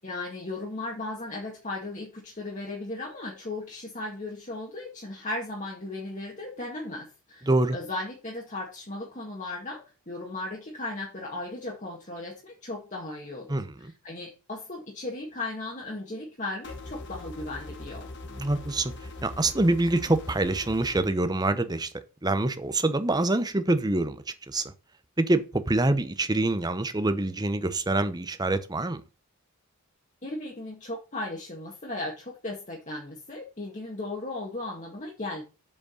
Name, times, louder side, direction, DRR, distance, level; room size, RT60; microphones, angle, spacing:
voice 1, 0.0-18.1 30.2-35.4, left 2 dB, 35° left, 1.9 m, -36 dB
voice 2, 7.5-7.8 13.5-13.7 18.4-18.9 19.2-21.9 22.2-24.2 24.5-24.6 25.2-29.0, right 2 dB, 20° right, 0.8 m, -25 dB
sound 1, 16.6-21.0, left 2 dB, 50° left, 1.2 m, -41 dB
7.3 x 5.1 x 6.4 m
head